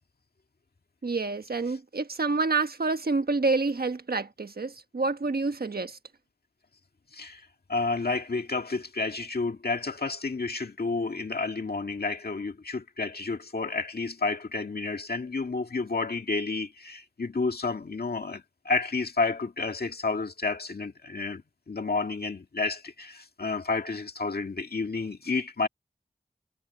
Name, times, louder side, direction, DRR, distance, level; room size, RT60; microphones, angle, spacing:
voice 1, 1.0-6.0, right 3 dB, 80° right, 1.4 m, -28 dB
voice 2, 7.1-21.4 21.7-25.7, left 3 dB, 85° left, 1.9 m, -30 dB
wide cardioid pair, 60°, 16 cm